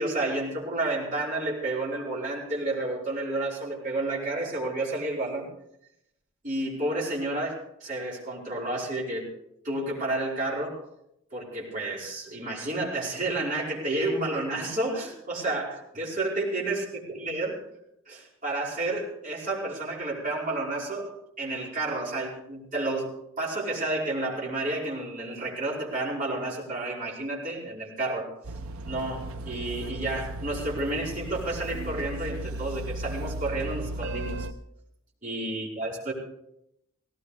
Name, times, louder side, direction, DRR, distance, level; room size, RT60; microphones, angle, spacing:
voice 1, 0.0-5.5 6.4-9.3 9.6-10.8 11.3-17.6 18.1-28.3 28.9-34.5 35.2-36.1, right 2 dB, 40° right, -6 dB, 5.2 m, -31 dB
sound 1, 28.4-34.5, right 1 dB, 85° right, 0.7 m, -36 dB
18.5 x 18.0 x 3.4 m, 0.80 s
head